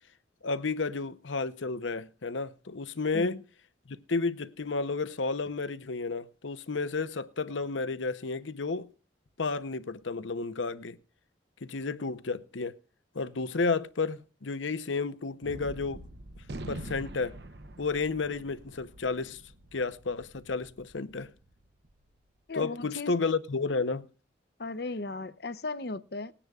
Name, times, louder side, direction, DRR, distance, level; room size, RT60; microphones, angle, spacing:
voice 1, 0.4-3.4 3.9-8.9 9.4-11.0 11.6-12.7 13.1-16.0 16.7-17.3 17.8-19.4 19.7-21.3 22.5-24.1, left 4 dB, 85° left, 0.8 m, -32 dB
Gunshot gunfire, 15.4-22.0, right 1 dB, 60° right, 0.8 m, -45 dB
voice 2, 22.5-23.1 24.6-26.3, left 3 dB, 55° left, 0.7 m, -36 dB
20.0 x 10.0 x 2.4 m
head